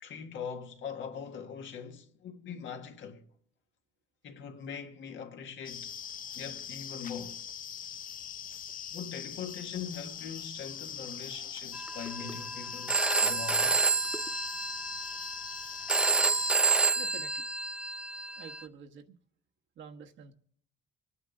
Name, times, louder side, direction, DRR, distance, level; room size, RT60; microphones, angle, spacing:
voice 1, 0.0-3.2 4.2-6.0 6.3-7.4 8.9-13.8, left 6 dB, 75° left, 1.6 m, -42 dB
sound 1, 5.6-16.5, left 8 dB, 45° left, 0.5 m, -42 dB
Telephone, 11.7-18.6, right 3 dB, 5° right, 0.5 m, -29 dB
voice 2, 17.0-17.5 18.4-19.2 19.8-20.3, right 7 dB, 70° right, 1.3 m, -48 dB
25.5 x 9.4 x 3.9 m
cardioid pair, 90°, 20 cm